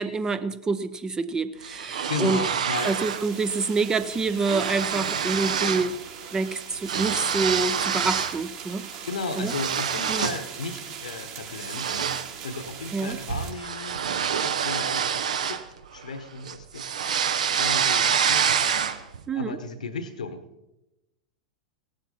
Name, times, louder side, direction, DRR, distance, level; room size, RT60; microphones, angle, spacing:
voice 1, 0.0-2.4 2.8-6.0 6.3-8.9 9.4-9.5 10.1-10.3 12.9-13.2 19.3-19.6, right 4 dB, 15° right, 14 dB, 0.6 m, -27 dB
sound 1, 1.6-3.3 3.6-5.9 6.2-8.4 8.8-10.5 10.9-11.1 11.6-16.1 16.5-19.2, right 7 dB, 65° right, 0.8 m, -27 dB
voice 2, 1.9-3.0 9.0-12.1 12.4-15.6 15.9-16.9 17.6-18.5 19.3-20.5, left 3 dB, 70° left, 10 dB, 1.1 m, -35 dB
sound 2, 2.7-13.5, right 7 dB, 45° right, 2.5 m, -41 dB
16.5 x 12.0 x 4.1 m, 0.96 s
figure-of-eight pair, 90°, 4 cm